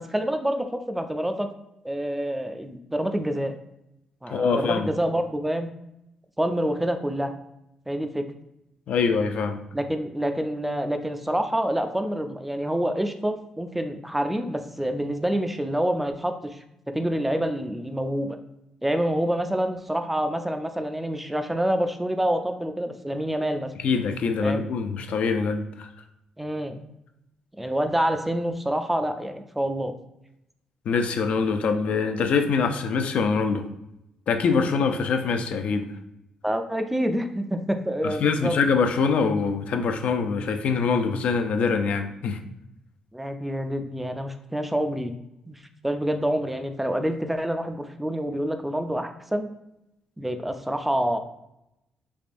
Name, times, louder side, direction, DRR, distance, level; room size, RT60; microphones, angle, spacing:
voice 1, 0.0-1.5 1.8-3.6 4.2-5.7 6.4-7.3 7.9-8.2 9.7-16.6 16.9-18.4 18.8-23.7 24.4-24.6 26.4-26.8 27.6-29.9 36.4-38.6 43.1-45.1 45.5-49.5 50.2-51.2, right 1 dB, 5° right, 7 dB, 0.3 m, -27 dB
voice 2, 4.3-4.9 8.9-9.6 23.8-25.9 30.9-33.6 34.3-35.9 38.0-42.4, left 5 dB, 65° left, 6 dB, 0.4 m, -24 dB
3.4 x 3.2 x 2.5 m, 0.85 s
cardioid pair, 100°, 2 cm